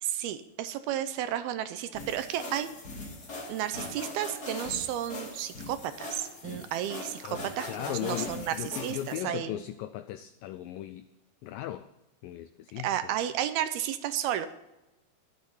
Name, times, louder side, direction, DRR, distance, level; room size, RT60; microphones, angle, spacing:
voice 1, 0.0-2.7 3.5-9.6 12.8-14.5, right 11 dB, 80° right, 11 dB, 2.5 m, -32 dB
sound 1, 1.9-9.2, left 2 dB, 30° left, 2.0 m, -41 dB
voice 2, 7.7-11.1 11.4-11.9 12.2-13.1, left 13 dB, 90° left, 11 dB, 1.9 m, -37 dB
12.5 x 12.0 x 5.5 m, 0.96 s
omnidirectional pair, 4.6 m